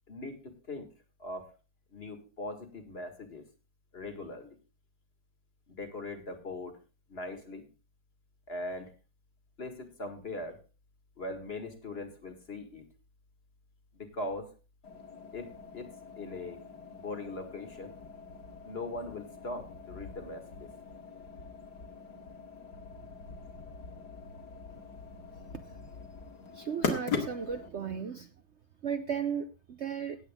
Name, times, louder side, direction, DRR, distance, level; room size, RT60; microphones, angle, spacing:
voice 1, 0.1-0.9 1.2-1.5 1.9-3.4 3.9-4.6 5.7-6.8 7.1-7.7 8.5-8.9 9.6-10.6 11.2-12.9 13.9-14.5 15.3-16.6 16.9-18.0 18.6-20.7, left 2 dB, 35° left, 8 dB, 1.9 m, -40 dB
sound 1, 14.8-27.7, left 5 dB, 70° left, 2.5 m, -41 dB
voice 2, 26.5-28.3 28.8-30.2, right 7 dB, 55° right, 8 dB, 0.9 m, -35 dB
17.5 x 8.2 x 3.5 m, 0.32 s
omnidirectional pair, 1.8 m